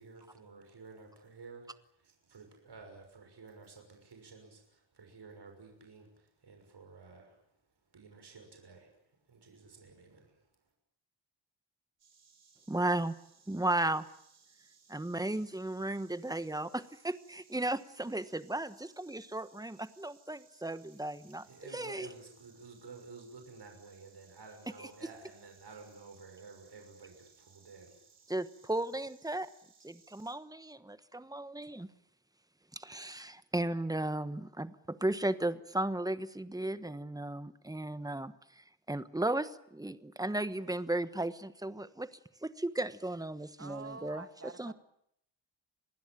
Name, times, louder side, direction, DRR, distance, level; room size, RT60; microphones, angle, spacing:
voice 1, 0.0-7.4 7.9-10.4 21.2-28.2, right 4 dB, 60° right, 3 dB, 6.3 m, -53 dB
Insect, 12.0-30.4, right 6 dB, 90° right, 6.4 m, -64 dB
voice 2, 12.7-13.1 13.5-14.1 14.9-22.1 28.3-29.5 29.8-31.9 32.7-42.1 42.4-44.2 44.6-44.7, right 1 dB, 10° right, 13 dB, 1.2 m, -35 dB
voice 3, 43.6-44.7, right 4 dB, 30° right, 9 dB, 2.4 m, -47 dB
27.0 x 20.0 x 8.8 m, 0.73 s
wide cardioid pair, 145°, 45 cm